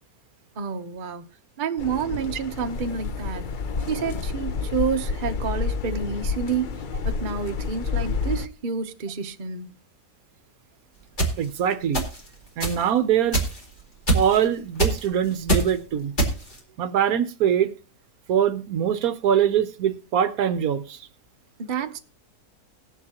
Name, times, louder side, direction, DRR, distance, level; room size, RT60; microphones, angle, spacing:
voice 1, 0.6-1.3 1.6-3.5 3.9-6.7 7.0-9.7 21.6-22.0, right 6 dB, 40° right, 0.8 m, -29 dB
sound 1, 1.8-8.5, left 5 dB, 80° left, 0.4 m, -29 dB
sound 2, 11.2-11.3 11.9-12.3 12.6-12.8 13.3-13.6 14.1-14.4 14.8-15.1 15.5-15.7 16.2-16.6, right 2 dB, 30° left, 2.5 m, -22 dB
voice 2, 11.4-12.1 12.6-13.4 14.1-16.1 16.8-17.7 18.3-21.1, right 9 dB, 70° right, 1.1 m, -23 dB
20.0 x 7.1 x 2.8 m
omnidirectional pair, 1.7 m